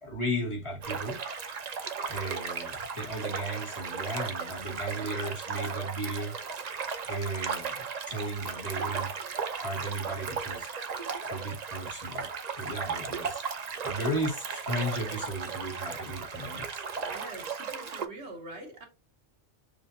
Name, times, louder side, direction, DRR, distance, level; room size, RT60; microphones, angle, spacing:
voice 1, 0.0-1.2 2.1-6.3 7.1-9.1 9.6-10.7 11.2-12.3 12.6-13.4 13.8-16.8, equal, 25° left, 1.3 m, -35 dB
sound 1, 0.8-18.1, right 5 dB, 45° right, 0.6 m, -36 dB
voice 2, 17.0-18.8, right 2 dB, 65° right, 1.8 m, -44 dB
6.7 x 2.5 x 2.6 m
omnidirectional pair, 1.2 m